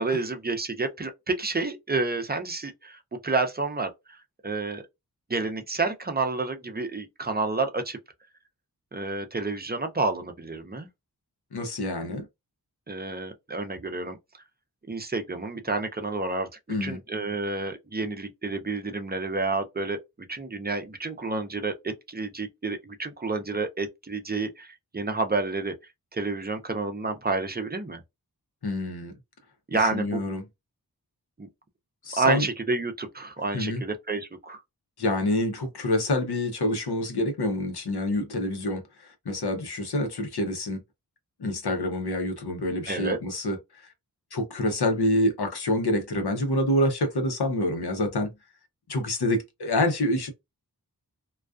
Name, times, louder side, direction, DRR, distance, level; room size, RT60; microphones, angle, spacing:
voice 1, 0.0-4.8 5.3-8.0 8.9-10.9 12.9-14.2 14.9-16.5 16.8-20.0 20.3-25.7 26.1-28.0 29.7-30.3 31.4-31.5 32.2-34.6 42.9-43.2, right 3 dB, 25° right, 0.5 m, -29 dB
voice 2, 11.5-12.3 16.7-17.0 28.6-29.1 29.8-30.4 32.0-32.5 33.5-33.8 35.0-40.8 41.4-43.9 44.3-48.3 48.9-50.3, left 1 dB, 80° left, 0.8 m, -27 dB
2.3 x 2.3 x 2.3 m
wide cardioid pair, 50°, 38 cm